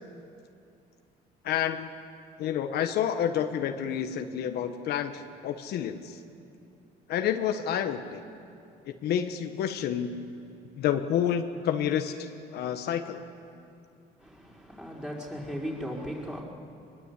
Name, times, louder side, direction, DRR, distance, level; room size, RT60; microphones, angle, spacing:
voice 1, 1.4-1.9 2.4-6.2 7.1-8.2 8.9-10.2 10.7-13.2, left 9 dB, 70° left, 6 dB, 1.3 m, -29 dB
voice 2, 14.2-16.4, equal, 5° right, -3 dB, 4.7 m, -37 dB
22.5 x 21.0 x 8.3 m, 2.5 s
cardioid pair, 110°, 17 cm